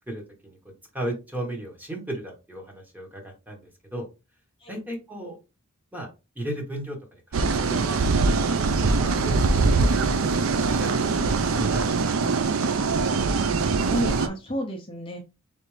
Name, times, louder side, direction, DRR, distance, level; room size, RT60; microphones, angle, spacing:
voice 1, 0.1-0.6 0.9-4.1 4.7-5.4 5.9-6.1 6.3-7.0 7.3-8.0 8.3-9.9 10.2-11.0 11.6-12.3, right 1 dB, 10° right, 1 dB, 1.2 m, -35 dB
sound 1, 7.3-14.3, right 4 dB, 75° right, 0.5 m, -23 dB
voice 2, 13.8-15.2, equal, 25° left, 1 dB, 0.7 m, -31 dB
4.1 x 3.3 x 3.2 m, 0.28 s
head